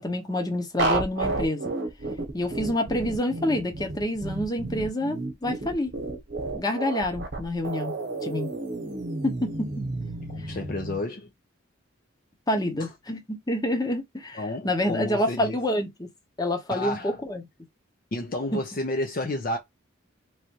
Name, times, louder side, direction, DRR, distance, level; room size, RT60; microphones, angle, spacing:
voice 1, 0.0-1.7 2.3-5.9 6.5-7.9 8.2-8.5 9.2-9.7 10.4-10.5 12.5-16.1 16.4-17.4 18.5-18.6, left 1 dB, 20° left, 0.8 m, -27 dB
sound 1, 0.8-11.0, right 2 dB, 55° right, 1.0 m, -31 dB
voice 2, 10.3-11.3 12.8-12.9 14.3-15.6 16.7-17.2 18.1-19.6, left 2 dB, 40° left, 0.5 m, -31 dB
3.1 x 2.5 x 2.9 m
head